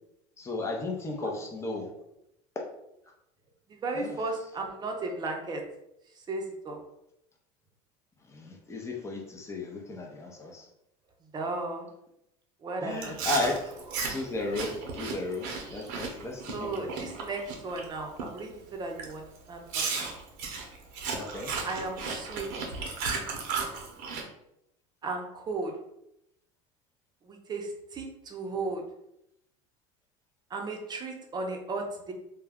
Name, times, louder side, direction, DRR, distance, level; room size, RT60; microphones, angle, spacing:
voice 1, 0.4-1.9 3.9-4.1 8.3-10.7 12.8-13.5 14.1-17.1 21.1-21.5, left 2 dB, 20° left, 0 dB, 0.6 m, -34 dB
voice 2, 3.8-5.6 6.3-6.8 11.3-11.9 12.6-13.2 16.5-19.8 21.6-22.5 25.0-25.7 27.2-28.8 30.5-32.1, right 3 dB, 25° right, 2 dB, 0.6 m, -35 dB
Chewing mastication, 13.0-17.8 18.2-18.5 19.0-19.1 19.7-24.2, right 4 dB, 70° right, 0.7 m, -35 dB
2.3 x 2.2 x 3.5 m, 0.81 s
supercardioid pair, 115°, 16 cm